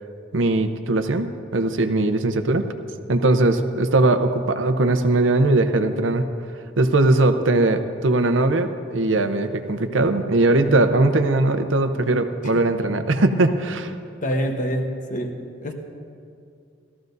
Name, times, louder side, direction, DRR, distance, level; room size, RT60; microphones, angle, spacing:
voice 1, 0.3-2.7 3.1-6.2 6.8-13.9, right 2 dB, 70° right, 8 dB, 0.7 m, -20 dB
voice 2, 14.2-15.4 15.6-15.7, equal, 40° left, 4 dB, 1.0 m, -26 dB
18.0 x 14.0 x 2.7 m, 2.4 s
head